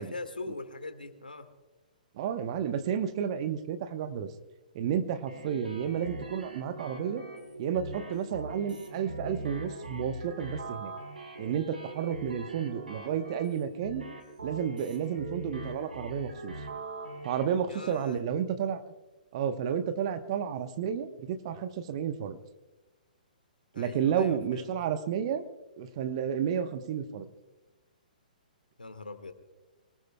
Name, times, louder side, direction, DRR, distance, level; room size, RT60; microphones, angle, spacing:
voice 1, 0.0-1.5 17.7-18.2 23.7-24.7 28.8-29.3, left 3 dB, 80° left, 7 dB, 1.8 m, -41 dB
voice 2, 2.1-4.3 4.7-7.2 7.6-10.9 11.4-14.1 14.4-16.5 17.2-18.8 19.3-22.4 23.7-25.4 25.8-27.2, right 8 dB, 40° right, 9 dB, 1.1 m, -31 dB
sound 1, 5.3-17.4, right 2 dB, 75° right, 3.8 m, -41 dB
24.0 x 19.5 x 2.3 m, 1.1 s
figure-of-eight pair, 120°, 5 cm